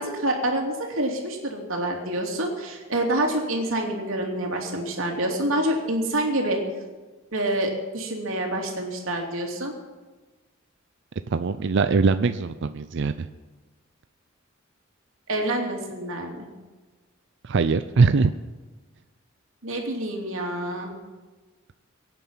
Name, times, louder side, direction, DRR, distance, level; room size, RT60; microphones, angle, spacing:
voice 1, 0.0-6.6 7.3-9.7 15.3-16.5 19.6-20.9, right 1 dB, 75° right, 1 dB, 3.0 m, -27 dB
voice 2, 11.3-13.3 17.4-18.3, right 4 dB, 60° right, 11 dB, 0.5 m, -21 dB
23.0 x 9.1 x 5.7 m, 1.3 s
head